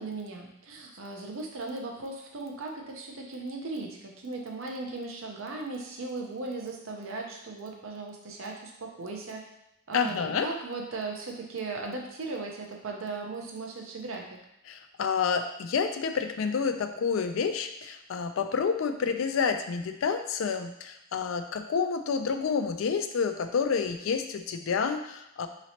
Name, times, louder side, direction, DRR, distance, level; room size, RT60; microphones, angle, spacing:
voice 1, 0.0-9.4 9.9-14.4, right 3 dB, 75° right, 1 dB, 0.7 m, -37 dB
voice 2, 9.9-10.5 14.7-25.5, left 6 dB, 70° left, 7 dB, 0.4 m, -29 dB
4.1 x 3.1 x 2.8 m, 0.85 s
head